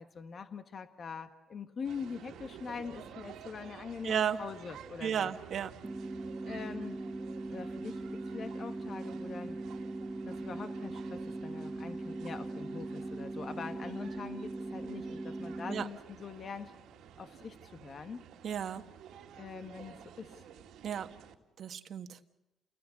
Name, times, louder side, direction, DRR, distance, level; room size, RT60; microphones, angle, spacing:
voice 1, 0.0-5.3 6.4-7.0 7.5-9.6 10.2-16.7 17.2-18.2 19.4-20.4, left 5 dB, 50° left, 8 dB, 1.4 m, -43 dB
sound 1, 1.8-21.3, right 8 dB, 85° right, 2.2 m, -52 dB
voice 2, 4.0-4.4 5.0-5.7 15.7-15.9 18.4-18.8 20.8-21.1 21.6-22.1, right 8 dB, 65° right, 8 dB, 1.4 m, -33 dB
sound 2, 5.8-15.8, right 2 dB, 20° right, 1.7 m, -40 dB
29.5 x 19.0 x 8.4 m, 1.0 s
cardioid pair, 90°, 0 cm